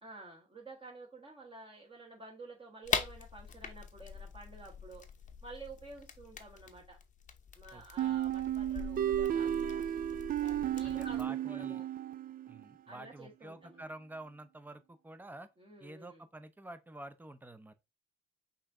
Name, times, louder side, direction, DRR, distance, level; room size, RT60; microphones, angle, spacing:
voice 1, 0.0-5.0 5.4-7.0 7.5-9.8 10.4-11.9 12.9-13.9 15.6-16.2, right 2 dB, 25° right, 1.4 m, -51 dB
sound 1, 2.8-11.3, left 6 dB, 40° left, 0.7 m, -42 dB
voice 2, 7.7-8.2 10.5-11.8 12.5-15.5 15.8-17.7, right 2 dB, 10° right, 0.6 m, -49 dB
sound 2, 8.0-12.6, right 11 dB, 45° right, 0.4 m, -33 dB
5.5 x 2.7 x 3.6 m
cardioid pair, 90°, 20 cm